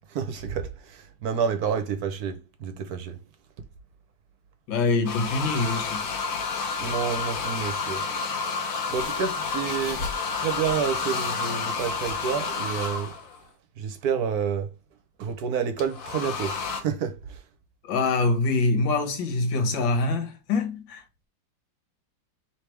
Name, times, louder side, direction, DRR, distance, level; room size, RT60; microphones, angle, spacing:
voice 1, 0.1-3.2 6.8-8.0 8.4-10.1 10.4-13.1 13.8-14.7 15.2-17.4, right 7 dB, 65° right, 1.0 m, -29 dB
voice 2, 4.7-6.0 17.8-21.0, left 3 dB, 80° left, 1.7 m, -24 dB
sound 1, 5.0-13.4 15.8-16.8, left 5 dB, 60° left, 1.0 m, -30 dB
3.4 x 3.3 x 4.4 m
omnidirectional pair, 2.0 m